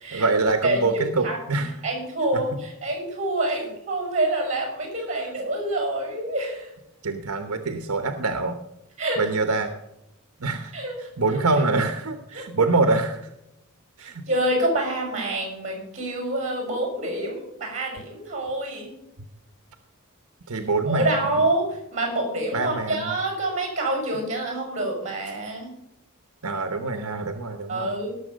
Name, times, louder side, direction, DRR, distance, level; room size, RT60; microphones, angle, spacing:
voice 1, 0.1-1.7 7.0-8.6 9.2-9.7 10.4-10.7 11.2-13.2 14.0-14.3 20.5-21.2 22.5-23.1 26.4-27.9, right 3 dB, 75° right, 7 dB, 1.0 m, -24 dB
voice 2, 0.6-1.4 1.8-6.7 9.0-9.3 10.7-10.9 11.3-11.4 12.3-12.4 14.0-18.9 20.9-25.7 27.7-28.2, right 1 dB, 35° right, 2 dB, 6.2 m, -27 dB
17.5 x 7.0 x 5.2 m, 0.85 s
head